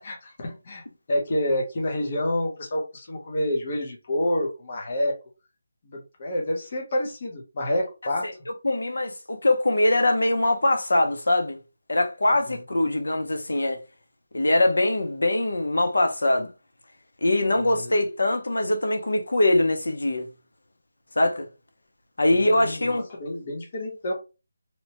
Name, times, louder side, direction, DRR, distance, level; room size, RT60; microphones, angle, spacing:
voice 1, 0.0-5.2 5.8-8.3 12.5-12.6 17.6-17.9 22.3-24.1, left 1 dB, 25° left, 0.6 m, -28 dB
voice 2, 8.6-11.6 11.9-13.8 14.3-16.5 17.2-20.2 21.2-21.5 22.2-23.0, left 1 dB, 70° left, 0.6 m, -22 dB
2.8 x 2.1 x 2.7 m
figure-of-eight pair, 180°, 0 cm